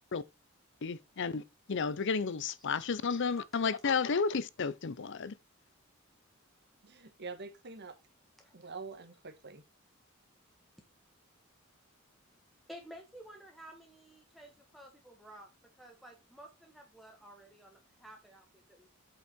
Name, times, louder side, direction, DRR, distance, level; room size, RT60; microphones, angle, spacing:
voice 1, 0.8-1.4 1.7-5.3, left 5 dB, 60° left, 0.6 m, -32 dB
voice 2, 2.5-3.0 3.4-3.6 8.4-8.5 12.7-18.9, right 1 dB, ahead, 1.6 m, -53 dB
voice 3, 6.8-7.9 8.5-9.6, right 4 dB, 55° right, 1.6 m, -45 dB
8.2 x 5.5 x 4.5 m
head